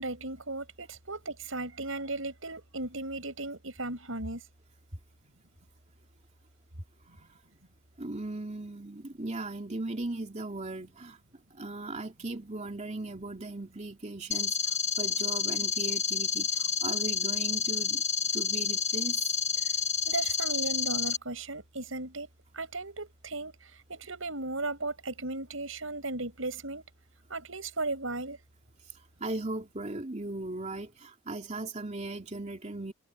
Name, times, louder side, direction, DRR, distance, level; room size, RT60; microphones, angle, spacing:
voice 1, 0.0-4.4 20.1-22.3 22.5-23.5 23.9-26.8 27.3-28.4, right 2 dB, 85° right, 5.8 m, -36 dB
voice 2, 8.0-11.2 11.5-18.0 18.3-19.3 29.2-32.9, right 2 dB, 35° right, 3.1 m, -38 dB
sound 1, 14.3-21.2, left 6 dB, 35° left, 1.9 m, -29 dB
head